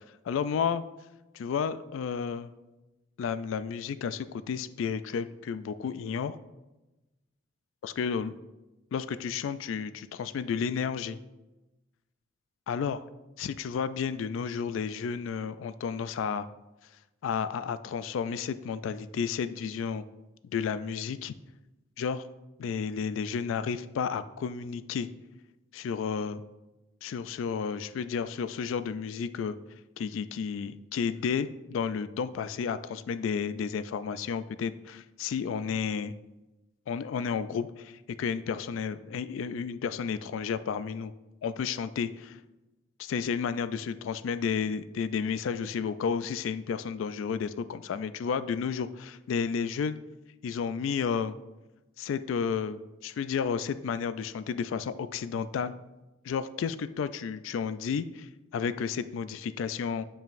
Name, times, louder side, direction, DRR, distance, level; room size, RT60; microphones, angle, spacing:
voice 1, 0.2-0.8 1.3-2.5 3.2-6.4 7.8-8.4 8.9-11.2 12.7-13.0 13.4-16.5 17.2-20.0 20.5-21.3 22.0-22.2 22.6-25.1 25.7-26.4 27.0-29.6 30.0-36.1 36.9-41.1 41.4-42.4 43.0-49.9 50.4-51.4 52.0-55.7 56.2-60.0, left 6 dB, 85° left, 14 dB, 0.3 m, -32 dB
9.0 x 5.5 x 2.5 m, 1.0 s
head